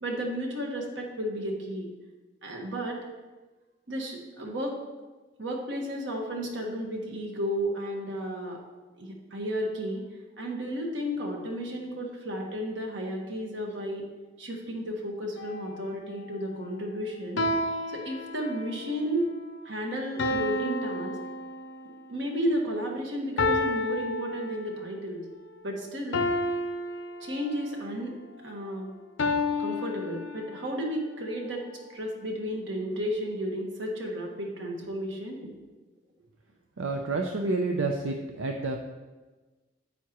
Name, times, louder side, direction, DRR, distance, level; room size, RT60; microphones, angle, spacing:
voice 1, 0.0-1.9 2.4-3.0 3.9-4.8 5.4-8.6 9.0-10.0 10.4-14.0 14.4-17.4 17.9-19.3 19.7-21.2 22.1-25.2 25.6-26.3 27.2-28.2 28.4-28.9 29.6-31.6 31.9-35.5, equal, 70° right, 0 dB, 1.6 m, -33 dB
sound 1, 15.4-15.8 17.4-18.8 20.2-22.0 23.4-25.0 26.1-27.8 29.2-30.8, left 2 dB, 75° left, 0.6 m, -30 dB
voice 2, 36.8-38.8, right 3 dB, 85° right, 3 dB, 0.6 m, -29 dB
9.2 x 8.4 x 3.0 m, 1.3 s
head